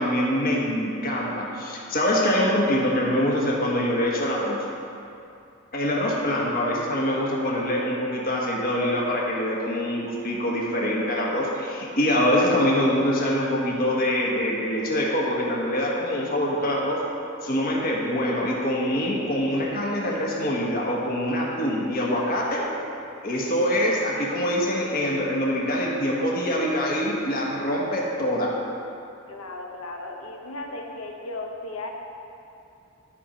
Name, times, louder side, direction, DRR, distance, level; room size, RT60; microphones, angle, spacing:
voice 1, 0.0-4.6 5.7-17.0 17.4-22.6 23.2-28.6, equal, 45° left, -3 dB, 1.4 m, -24 dB
voice 2, 29.3-31.9, left 2 dB, 85° left, 1 dB, 1.0 m, -36 dB
13.0 x 4.3 x 5.1 m, 2.7 s
head